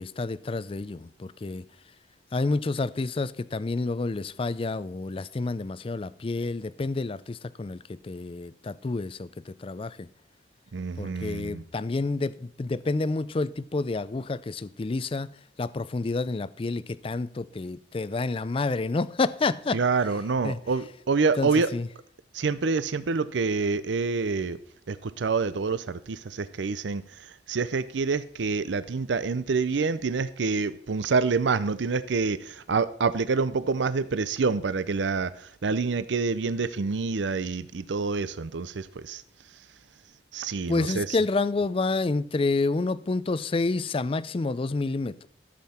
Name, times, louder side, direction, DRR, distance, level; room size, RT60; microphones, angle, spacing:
voice 1, 0.0-1.6 2.3-10.1 11.0-15.3 15.6-19.8 20.4-20.6 21.4-21.9 40.7-45.3, left 3 dB, 30° left, 0.4 m, -29 dB
voice 2, 10.7-11.6 19.7-21.7 22.3-24.6 24.9-27.0 27.5-35.3 35.6-39.2 40.3-41.2, right 4 dB, 85° right, 0.5 m, -27 dB
14.0 x 7.6 x 4.3 m
head